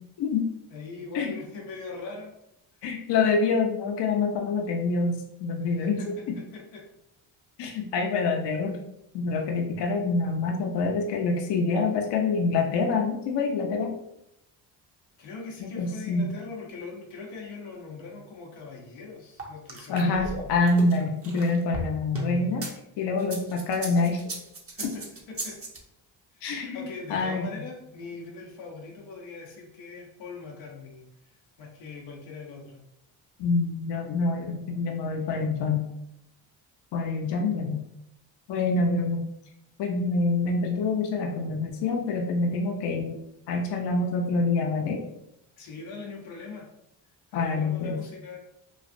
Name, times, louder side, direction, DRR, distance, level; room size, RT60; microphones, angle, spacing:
voice 1, 0.2-0.5 1.1-1.3 2.8-6.4 7.6-8.8 9.1-13.9 15.6-16.3 19.9-22.7 23.0-24.2 24.8-24.9 26.4-27.5 33.4-35.9 36.9-37.8 38.5-39.3 39.8-43.2 43.5-45.0 47.3-48.0, left 3 dB, 60° left, 1 dB, 0.6 m, -26 dB
voice 2, 0.7-2.3 5.8-6.8 15.2-20.5 24.7-25.6 26.3-32.8 45.6-46.7 47.3-48.4, left 4 dB, 90° left, -1 dB, 0.8 m, -41 dB
sound 1, 19.4-22.7 23.2-25.8, right 2 dB, 30° right, 0.8 m, -35 dB
3.1 x 2.5 x 2.5 m, 0.80 s
supercardioid pair, 55°, 46 cm